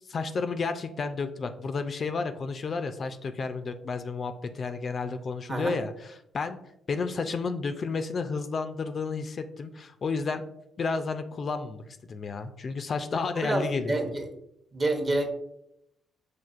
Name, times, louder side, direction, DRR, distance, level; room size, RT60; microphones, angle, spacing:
voice 1, 0.1-6.6 6.9-10.4 10.8-11.8 12.1-14.0, left 4 dB, 45° left, 8 dB, 0.3 m, -31 dB
voice 2, 13.4-14.2 14.7-15.3, right 2 dB, 30° right, 2 dB, 0.8 m, -28 dB
5.9 x 2.4 x 2.4 m, 0.78 s
cardioid pair, 90°, 0 cm